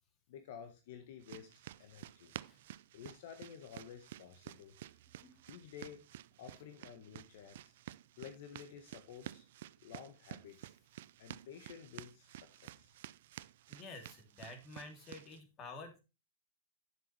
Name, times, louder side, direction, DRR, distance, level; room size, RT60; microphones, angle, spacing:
voice 1, 0.3-2.3 2.9-4.7 5.5-6.0 6.4-7.7 8.2-9.5 9.8-10.7 11.2-13.0, left 8 dB, 65° left, 7 dB, 1.5 m, -52 dB
sound 1, 1.2-15.4, right 14 dB, 65° right, 0.4 m, -52 dB
voice 2, 13.7-16.0, left 3 dB, 30° left, 5 dB, 3.2 m, -50 dB
10.5 x 7.5 x 3.4 m, 0.27 s
hypercardioid pair, 120°, 0 cm